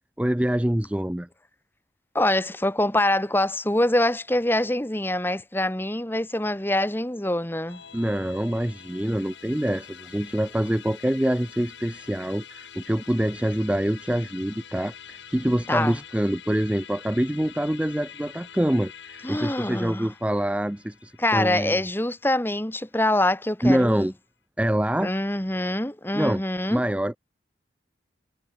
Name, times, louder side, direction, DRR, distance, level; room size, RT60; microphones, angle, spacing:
voice 1, 0.2-1.3 7.9-21.8 23.6-24.1 24.6-25.1 26.1-26.4 26.7-27.2, right 1 dB, 5° right, 0.5 m, -25 dB
voice 2, 2.1-7.8 15.7-16.0 19.2-20.1 21.2-24.1 25.0-26.8, left 1 dB, 10° left, 1.3 m, -25 dB
Musical instrument, 7.7-23.2, left 8 dB, 85° left, 2.2 m, -46 dB
head